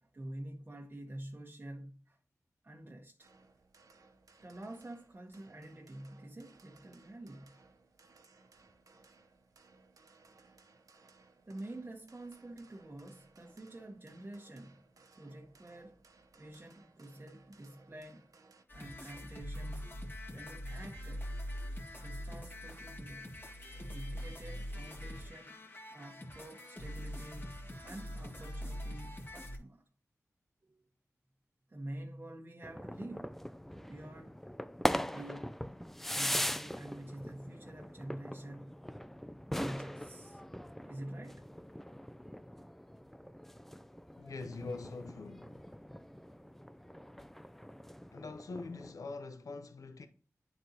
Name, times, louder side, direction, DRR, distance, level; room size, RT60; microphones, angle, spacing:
voice 1, 0.0-2.2 2.6-3.3 4.4-7.7 8.6-8.7 11.5-14.8 15.2-16.0 16.4-18.3 18.7-20.0 20.3-21.3 22.0-23.3 23.9-25.6 25.9-27.5 27.8-29.8 30.6-30.9 31.7-33.4 33.7-34.5 34.9-35.5 36.1-38.8 39.5-40.4 40.9-41.5, right 1 dB, 35° right, 1.0 m, -48 dB
sound 1, 3.2-18.6, right 3 dB, 80° right, 0.8 m, -63 dB
sound 2, 18.7-29.6, equal, 40° left, 1.7 m, -43 dB
sound 3, 32.6-48.9, equal, 5° left, 0.3 m, -41 dB
voice 2, 44.2-45.6 48.1-50.1, left 3 dB, 80° left, 0.7 m, -43 dB
9.8 x 3.9 x 2.8 m
cardioid pair, 50°, 6 cm